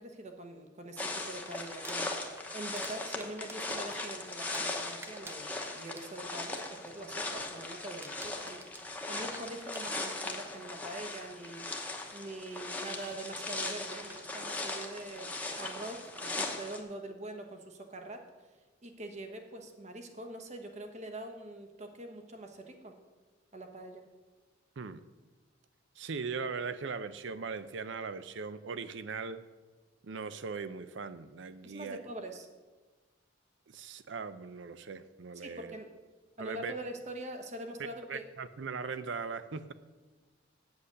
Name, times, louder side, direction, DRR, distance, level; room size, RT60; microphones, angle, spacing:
voice 1, 0.0-2.2 2.5-18.2 18.8-22.9 23.5-24.1 31.6-32.5 35.3-35.9 36.4-38.2, right 1 dB, 35° right, 5 dB, 1.1 m, -44 dB
sound 1, 1.0-16.8, left 2 dB, 10° left, 0.9 m, -39 dB
Crumpling crinkling, 1.7-4.8 5.0-6.4 6.8-7.1 7.4-7.7 8.0-10.4 11.3-11.4 13.4-13.5 13.9-14.2, right 2 dB, 15° right, 0.5 m, -50 dB
voice 2, 26.0-29.4 30.0-32.0 33.7-35.8 36.4-36.7 38.1-39.7, right 5 dB, 65° right, 13 dB, 0.5 m, -39 dB
8.3 x 8.0 x 6.6 m, 1.3 s
head